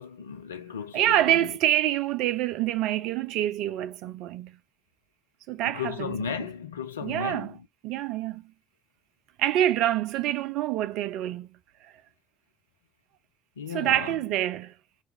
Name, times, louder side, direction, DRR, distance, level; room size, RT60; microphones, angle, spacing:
voice 1, 0.0-1.5 5.6-7.6 13.6-14.1, left 7 dB, 85° left, 0.3 m, -35 dB
voice 2, 0.9-4.6 5.5-6.3 7.0-7.5 7.8-8.4 9.4-11.9 13.7-14.7, right 12 dB, 65° right, 0.3 m, -26 dB
3.0 x 2.3 x 2.8 m
figure-of-eight pair, 50°, 0 cm